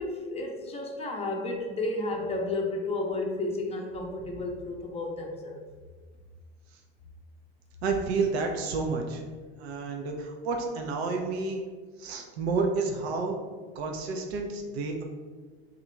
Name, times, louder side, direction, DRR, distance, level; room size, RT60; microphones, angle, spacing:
voice 1, 0.0-5.6, left 2 dB, 20° left, 1 dB, 0.6 m, -32 dB
voice 2, 7.8-9.2 9.6-11.6 12.0-13.4 13.8-15.0, right 4 dB, 70° right, 2 dB, 0.6 m, -30 dB
2.8 x 2.5 x 4.2 m, 1.4 s
hypercardioid pair, 85°, 33 cm